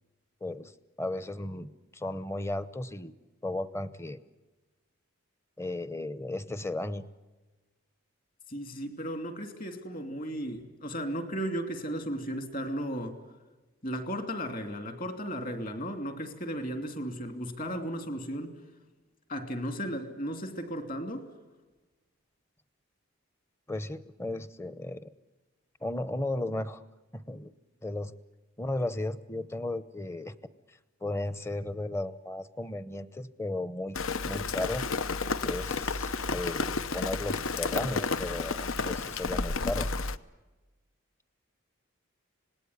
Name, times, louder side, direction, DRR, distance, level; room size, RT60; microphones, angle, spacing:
voice 1, 0.4-3.1 3.4-4.2 5.6-7.0 23.7-25.1 25.8-26.8 27.1-27.5 27.8-28.1 28.6-30.3 30.7-34.0 34.2-34.9 35.4-39.9, left 1 dB, 10° left, 14 dB, 0.8 m, -35 dB
voice 2, 8.5-13.2 13.8-18.6 19.3-21.3, equal, 40° left, 7 dB, 2.9 m, -35 dB
Rain, 33.9-40.2, left 4 dB, 70° left, 0.9 m, -31 dB
26.5 x 19.5 x 9.7 m, 1.2 s
head